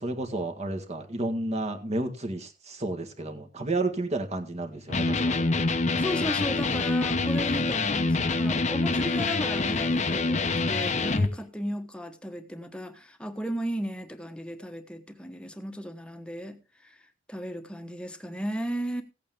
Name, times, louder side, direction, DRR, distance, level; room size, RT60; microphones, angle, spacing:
voice 1, 0.0-5.4, right 2 dB, 35° right, 1.7 m, -31 dB
Electric guitar, 4.9-11.3, left 3 dB, 35° left, 0.8 m, -26 dB
voice 2, 6.0-16.6 16.8-16.9 17.3-19.0, equal, 5° left, 1.2 m, -35 dB
16.0 x 8.5 x 3.6 m
head